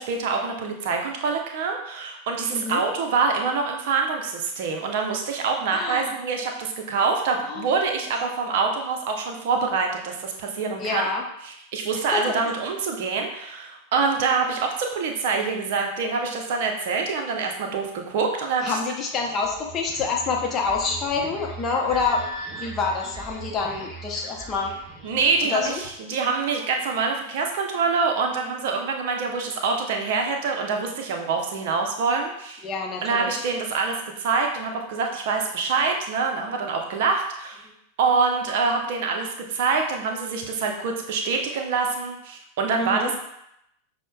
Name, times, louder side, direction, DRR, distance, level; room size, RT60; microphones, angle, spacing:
voice 1, 0.0-11.0 11.4-18.8 25.0-32.7 33.0-37.6 38.0-43.1, right 4 dB, 50° right, 3 dB, 0.6 m, -25 dB
voice 2, 5.7-6.1 7.4-7.6 10.8-11.2 12.1-12.4 18.6-22.2 22.5-24.7 25.5-25.8 32.6-33.4 42.8-43.1, left 4 dB, 25° left, 0 dB, 0.6 m, -27 dB
sound 1, 19.1-25.8, right 3 dB, 15° right, 1.1 m, -40 dB
6.2 x 2.1 x 2.2 m, 0.79 s
figure-of-eight pair, 90°, 0 cm